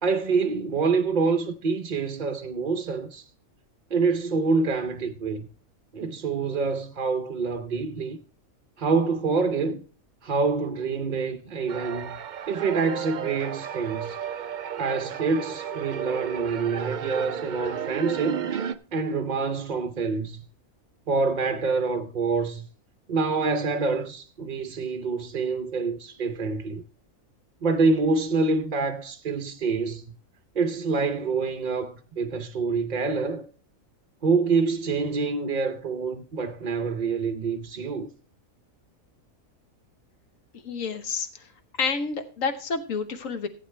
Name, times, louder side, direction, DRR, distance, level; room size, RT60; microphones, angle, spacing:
voice 1, 0.0-3.2 3.9-5.5 5.9-8.2 8.8-9.8 10.2-12.2 12.5-14.2 14.8-18.5 18.9-20.4 21.1-22.7 23.1-26.8 27.6-30.0 30.5-33.5 34.2-38.1, right 4 dB, 45° right, 0.7 m, -26 dB
sound 1, 11.7-18.7, right 8 dB, 75° right, 0.4 m, -33 dB
voice 2, 40.5-41.5 41.8-43.5, left 5 dB, 70° left, 1.4 m, -29 dB
15.0 x 8.2 x 3.2 m
omnidirectional pair, 1.4 m